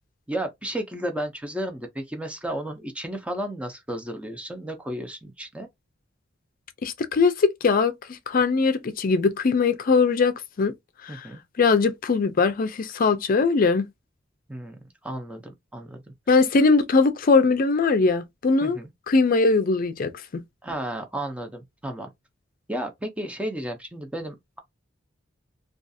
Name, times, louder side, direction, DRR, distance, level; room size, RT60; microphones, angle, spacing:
voice 1, 0.3-5.7 11.1-11.4 14.5-16.0 18.6-18.9 20.6-22.1 22.7-24.6, right 1 dB, 5° right, 0.5 m, -33 dB
voice 2, 6.8-10.7 11.0-11.2 11.6-13.9 16.3-18.8 19.1-20.4, left 4 dB, 50° left, 0.4 m, -21 dB
2.4 x 2.3 x 2.6 m
head